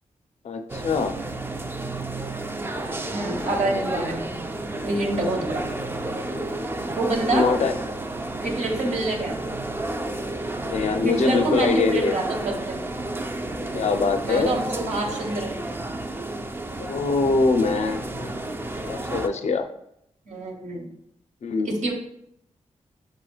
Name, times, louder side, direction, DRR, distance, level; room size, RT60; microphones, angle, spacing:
voice 1, 0.4-1.1 3.9-4.0 7.3-7.7 10.6-12.2 13.7-14.6 16.8-18.4 18.8-19.6 21.4-21.8, left 4 dB, 65° left, 7 dB, 0.4 m, -23 dB
sound 1, 0.7-19.3, right 2 dB, 20° right, 0.3 m, -31 dB
voice 2, 3.1-4.3 4.8-5.6 6.9-7.5 8.4-9.3 11.0-12.8 14.2-15.7 20.3-20.9 21.6-21.9, right 2 dB, 75° right, 0 dB, 1.0 m, -26 dB
6.8 x 3.0 x 2.3 m, 0.76 s
wide cardioid pair, 85°, 12 cm